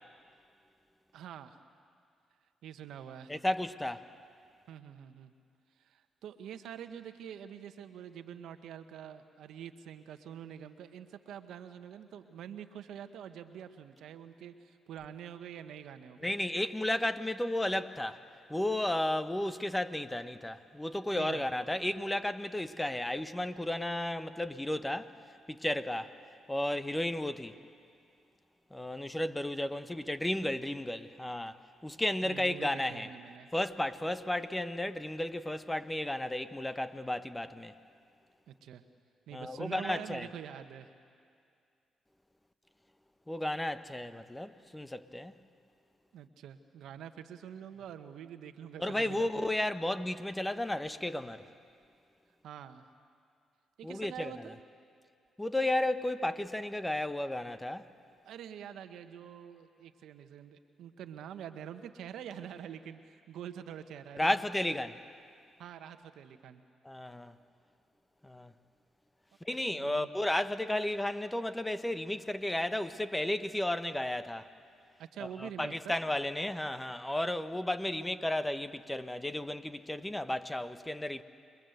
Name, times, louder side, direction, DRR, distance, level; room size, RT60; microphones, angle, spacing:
voice 1, 1.1-1.6 2.6-3.4 4.7-5.3 5.8-16.3 21.1-21.5 32.2-33.5 38.5-38.8 39.3-40.9 46.1-49.4 52.4-52.9 53.8-54.6 58.2-64.4 65.6-66.6 69.7-70.1 75.0-76.0, right 9 dB, 75° right, 1.2 m, -46 dB
voice 2, 3.3-4.0 16.2-18.2 18.5-25.1 25.5-26.1 26.5-27.6 28.7-31.6 31.8-33.1 33.5-37.7 39.3-40.3 43.3-45.3 48.8-51.5 53.8-54.4 55.4-57.8 64.2-65.0 66.8-67.3 68.2-68.5 69.4-74.5 75.2-81.2, left 1 dB, 15° left, 1.2 m, -33 dB
28.0 x 22.5 x 8.0 m
supercardioid pair, 50°, 0 cm